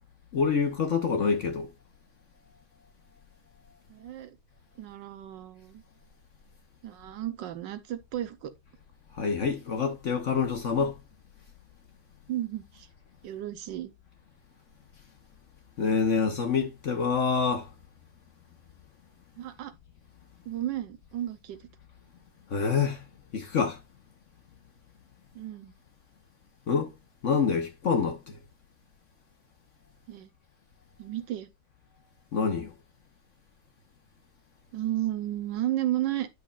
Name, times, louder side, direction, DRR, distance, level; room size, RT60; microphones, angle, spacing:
voice 1, 0.3-1.7 9.1-10.9 15.8-17.7 22.5-23.0 23.3-23.8 26.7-26.9 27.2-28.4 32.3-32.7, left 5 dB, 55° left, 0.8 m, -26 dB
voice 2, 3.9-4.4 4.8-5.8 6.8-8.5 12.3-12.9 13.2-13.9 19.4-19.7 20.5-21.6 25.3-25.7 30.1-30.3 31.0-31.5 34.7-36.3, right 13 dB, 70° right, 1.3 m, -33 dB
9.5 x 6.2 x 2.4 m
omnidirectional pair, 2.3 m